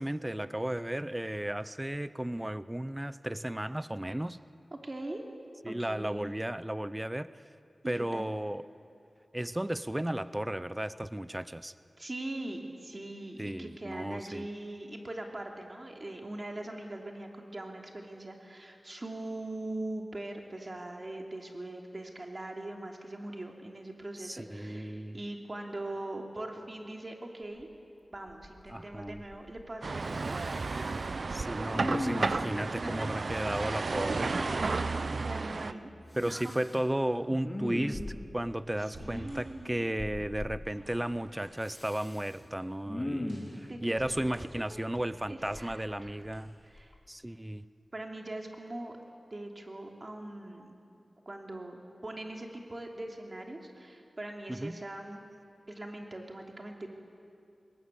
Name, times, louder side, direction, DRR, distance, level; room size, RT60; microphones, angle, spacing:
voice 1, 0.0-4.4 5.6-7.3 7.9-8.7 9.3-11.7 13.4-14.4 24.2-25.2 28.7-29.2 31.3-34.3 36.1-38.0 38.3-46.5 47.1-47.6 54.5-54.8, right 1 dB, 15° right, 15 dB, 0.6 m, -34 dB
voice 2, 4.7-5.2 5.6-6.3 7.8-8.3 12.0-27.7 28.1-30.4 30.6-31.6 32.8-33.1 33.6-34.0 34.2-35.9 36.2-36.5 38.8-39.9 43.7-44.9 45.3-46.2 46.6-46.9 47.9-49.0 49.3-50.7 51.3-55.2 55.7-57.0, right 1 dB, 40° right, 2 dB, 2.9 m, -41 dB
Respiratory sounds, 27.6-27.7 28.1-28.7 28.9-29.7 30.0-31.1 31.7-32.5 36.1-36.8 37.3-38.4 40.0-40.6 41.6-42.3 42.8-43.6 45.4-46.3 46.8-46.9, left 1 dB, 25° left, 2.5 m, -39 dB
sound 1, 29.8-35.7, right 3 dB, 70° right, 0.6 m, -32 dB
sound 2, 37.0-46.8, right 1 dB, 85° right, 8.0 m, -54 dB
21.0 x 20.0 x 8.3 m, 2.5 s
wide cardioid pair, 55°, 0 cm